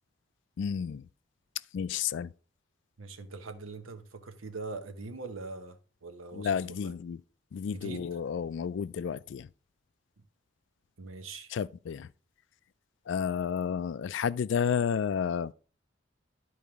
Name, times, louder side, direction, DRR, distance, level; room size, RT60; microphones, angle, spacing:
voice 1, 0.6-1.0 1.7-2.3 6.3-7.2 7.5-9.5 11.5-12.1 13.1-15.5, left 7 dB, 65° left, 0.3 m, -31 dB
voice 2, 3.0-6.9 7.7-8.2 11.0-11.5, right 3 dB, 85° right, 0.9 m, -42 dB
12.0 x 4.6 x 3.5 m
head